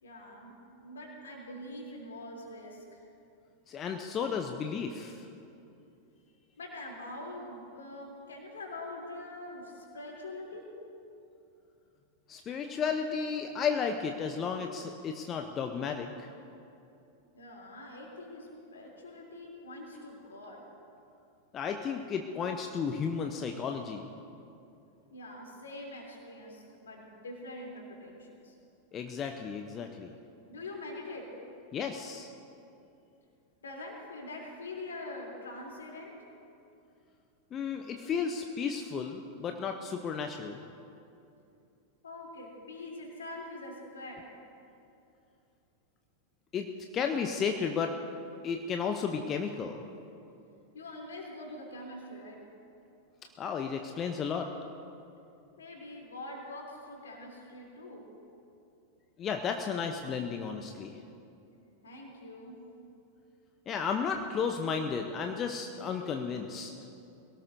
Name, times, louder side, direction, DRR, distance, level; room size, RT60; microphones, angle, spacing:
voice 1, 0.0-3.0 6.6-10.7 17.3-20.7 25.1-28.6 30.5-31.3 33.6-36.2 42.0-44.3 50.7-52.4 55.6-58.1 61.8-62.6, left 1 dB, 70° left, -1 dB, 3.4 m, -44 dB
voice 2, 3.7-5.3 12.3-16.3 21.5-24.1 28.9-30.1 31.7-32.3 37.5-40.6 46.5-46.7 46.9-47.9 48.4-49.8 53.4-54.5 59.2-61.0 63.7-66.7, left 6 dB, 30° left, 4 dB, 0.8 m, -33 dB
22.0 x 18.0 x 2.8 m, 2.7 s
figure-of-eight pair, 90°, 0 cm